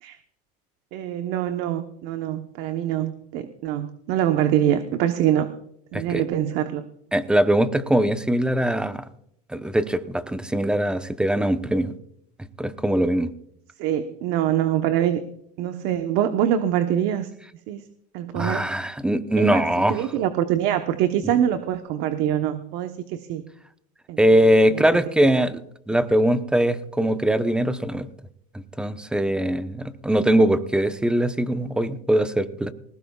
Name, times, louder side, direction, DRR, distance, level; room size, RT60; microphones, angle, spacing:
voice 1, 0.9-5.5 5.9-6.8 13.8-15.2 15.6-17.3 17.7-17.8 18.1-18.7 19.4-23.5 24.1-24.2 24.7-25.4, right 10 dB, 65° right, 8 dB, 1.1 m, -24 dB
voice 2, 5.9-6.2 7.1-9.0 9.5-11.9 12.6-13.3 18.3-20.0 21.2-21.3 24.2-25.6 25.9-28.1 28.8-32.7, right 1 dB, 5° right, 11 dB, 0.9 m, -21 dB
20.0 x 18.0 x 2.4 m, 0.72 s
supercardioid pair, 115°, 19 cm